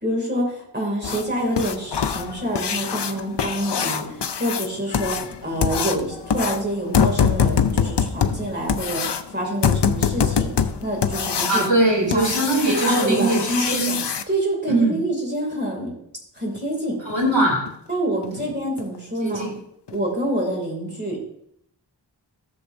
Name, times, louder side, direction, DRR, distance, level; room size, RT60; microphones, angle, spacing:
voice 1, 0.0-10.5 10.8-11.7 12.1-12.3 12.9-14.0 14.3-15.9 16.4-17.0 17.9-19.5 19.9-21.2, right 1 dB, 25° right, -1 dB, 2.6 m, -26 dB
sound 1, 1.0-14.2 16.6-16.7 17.1-17.2 17.7-17.8 18.2-18.3 18.8-19.0 19.3-19.4 19.9-20.0, left 7 dB, 70° left, 0.6 m, -24 dB
voice 2, 11.5-14.0 14.7-14.9 17.0-17.7 18.3-18.5 19.2-19.5, right 2 dB, 90° right, -1 dB, 3.1 m, -21 dB
13.5 x 7.1 x 2.6 m, 0.74 s
wide cardioid pair, 50°, 43 cm